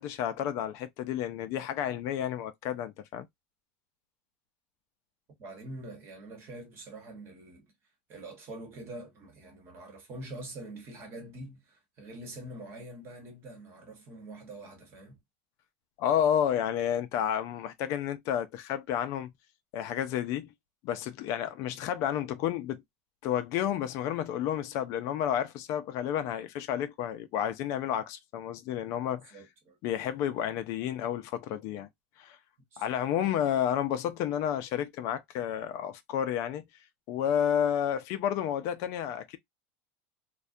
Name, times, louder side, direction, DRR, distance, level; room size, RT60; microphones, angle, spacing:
voice 1, 0.0-3.3 16.0-19.3 19.7-20.5 20.8-22.8 23.2-29.4 29.8-31.9 32.2-32.4 32.8-36.6 37.1-39.4, left 9 dB, 50° left, 0.4 m, -31 dB
voice 2, 5.4-7.7 8.1-15.2 29.3-29.8 32.7-33.0, right 1 dB, 40° right, 1.0 m, -45 dB
2.3 x 2.1 x 2.5 m
supercardioid pair, 145°, 7 cm